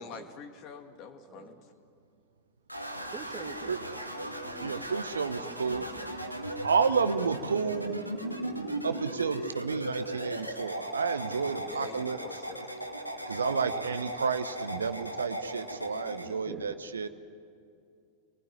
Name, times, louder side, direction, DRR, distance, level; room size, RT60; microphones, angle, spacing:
voice 1, 0.0-1.7 11.6-12.7, left 7 dB, 35° left, 7 dB, 2.1 m, -46 dB
voice 2, 1.2-1.6 3.1-4.9 5.4-6.1 8.2-8.8 16.3-16.7, right 6 dB, 20° right, 5 dB, 2.5 m, -47 dB
sound 1, 2.7-16.3, right 1 dB, 90° right, 2.0 m, -37 dB
voice 3, 4.6-5.8 6.4-12.2 13.3-17.1, right 5 dB, 70° right, 11 dB, 1.0 m, -31 dB
26.5 x 19.5 x 9.9 m, 2.5 s
figure-of-eight pair, 90°, 0 cm